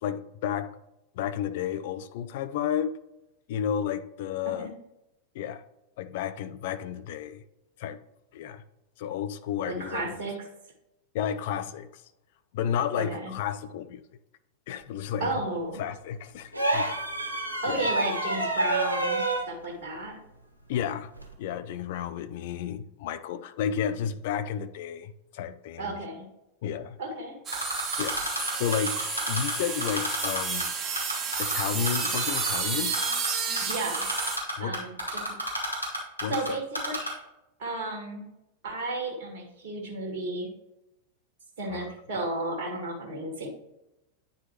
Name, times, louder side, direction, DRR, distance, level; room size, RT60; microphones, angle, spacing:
voice 1, 0.0-0.8 1.1-3.0 3.5-4.7 5.3-5.6 6.0-7.4 7.8-8.0 8.3-8.6 9.0-10.2 11.1-12.0 12.5-14.0 14.7-15.4 15.8-17.0 17.7-17.9 20.7-21.1 21.4-26.0 26.6-27.0 28.0-28.2 28.5-30.7 31.4-32.9 34.6-34.8 36.2-36.6 41.7-41.9, left 9 dB, 50° left, 12 dB, 0.5 m, -32 dB
voice 2, 9.6-10.3 13.0-13.3 15.2-15.8 17.6-20.2 25.8-26.3 27.0-27.4 33.6-34.1 34.6-35.2 36.3-37.2 37.6-38.3 38.6-40.5 41.6-43.5, right 2 dB, 50° right, 0 dB, 1.7 m, -33 dB
sound 1, 16.5-19.5 21.2-21.3, right 2 dB, 85° right, 1.3 m, -28 dB
Typing, 27.5-29.5 29.8-30.6 31.0-32.6 32.9-33.3 33.6-36.5 36.7-37.1, equal, 90° left, 2.1 m, -30 dB
sound 2, 27.5-34.4, right 5 dB, 25° right, 1.2 m, -31 dB
9.4 x 4.7 x 3.1 m, 0.92 s
figure-of-eight pair, 90°, 0 cm